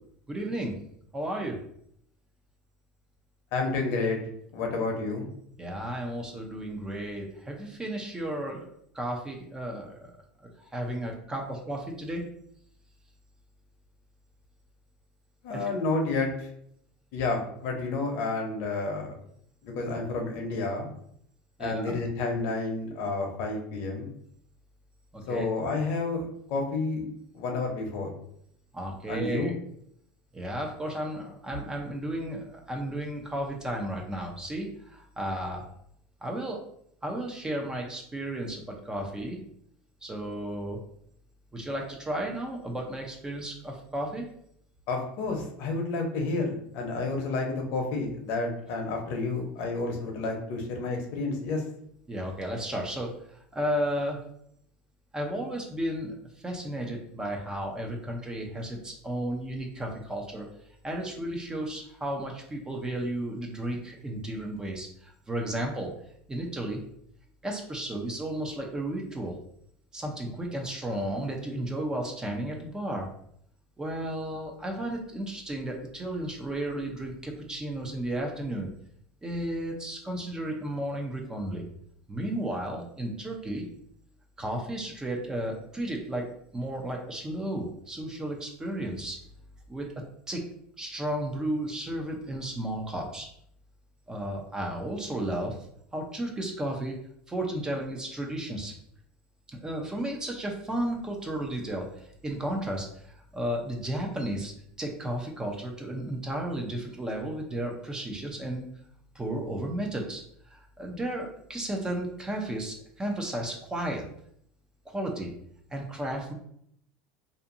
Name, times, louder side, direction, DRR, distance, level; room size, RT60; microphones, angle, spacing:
voice 1, 0.3-0.7 1.1-1.6 5.6-8.7 8.9-10.1 10.4-12.3 15.5-15.7 21.6-22.0 25.1-25.5 28.7-29.5 30.3-35.6 36.2-36.6 37.0-39.4 40.0-40.8 41.5-44.3 52.1-54.2 55.1-56.2 56.4-60.5 60.8-65.9 66.3-66.8 67.4-69.3 69.9-73.1 73.8-78.7 79.2-81.7 82.1-83.7 84.4-86.3 86.5-89.2 89.7-89.8 90.3-90.4 90.8-93.3 94.1-95.6 95.9-97.0 97.3-98.8 99.5-104.5 104.8-108.6 109.1-110.2 110.5-114.0 114.9-115.3 115.7-116.3, right 1 dB, 15° right, 1 dB, 0.5 m, -33 dB
voice 2, 3.5-4.2 4.5-5.3 15.4-16.5 17.1-19.1 19.6-20.9 21.6-24.1 25.3-26.2 26.5-27.1 27.3-28.1 29.1-29.5 44.9-51.6, left 3 dB, 60° left, 2 dB, 0.7 m, -30 dB
2.6 x 2.5 x 2.5 m, 0.70 s
supercardioid pair, 110°, 5 cm